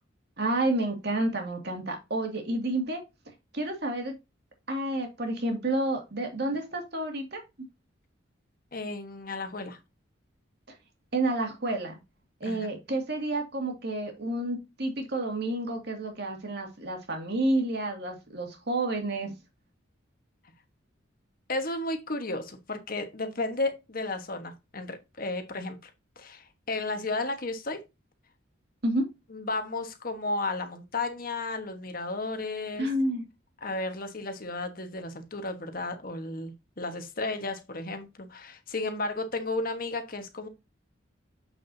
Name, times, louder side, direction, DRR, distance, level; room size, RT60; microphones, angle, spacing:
voice 1, 0.4-3.0 3.5-4.2 4.7-7.4 11.1-12.0 12.4-19.3 28.8-29.1 32.8-33.2, right 1 dB, 55° right, 2.3 m, -30 dB
voice 2, 8.7-9.8 12.4-12.7 21.5-25.9 26.2-27.8 29.3-32.9 33.6-40.5, left 2 dB, 45° left, 1.3 m, -33 dB
7.8 x 6.7 x 2.7 m
head